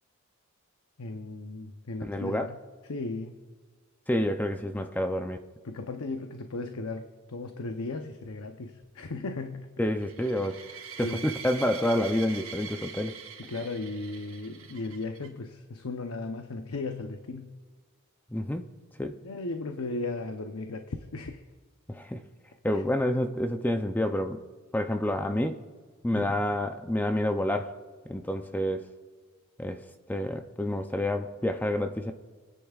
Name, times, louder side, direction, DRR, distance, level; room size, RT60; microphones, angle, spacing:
voice 1, 1.0-2.6 2.9-3.4 5.6-9.7 11.0-11.3 13.5-17.6 19.2-21.4 22.7-22.8 26.1-26.3, left 3 dB, 75° left, 6 dB, 0.7 m, -36 dB
voice 2, 2.0-2.5 4.1-5.4 9.8-10.5 11.0-13.1 18.3-18.7 19.0-19.2 21.9-22.2 22.6-24.4 24.7-25.6 26.0-27.8 28.1-28.8 29.6-29.8 30.1-32.1, left 1 dB, 10° left, 6 dB, 0.5 m, -28 dB
sound 1, 10.0-15.3, right 7 dB, 80° right, 2.8 m, -43 dB
30.0 x 10.0 x 2.4 m, 1.5 s
head